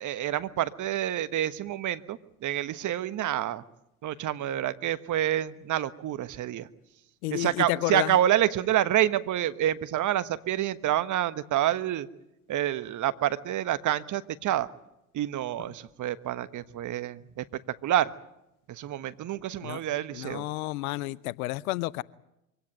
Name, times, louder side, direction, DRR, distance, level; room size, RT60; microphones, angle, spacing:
voice 1, 0.0-3.6 4.0-6.7 7.3-12.1 12.5-14.7 15.1-17.4 17.8-18.1 18.7-20.5, right 12 dB, 40° right, 1.3 m, -28 dB
voice 2, 7.2-8.1 19.6-19.8 20.1-22.0, left 19 dB, 65° left, 0.8 m, -31 dB
24.5 x 17.0 x 9.4 m
hypercardioid pair, 75°, 45 cm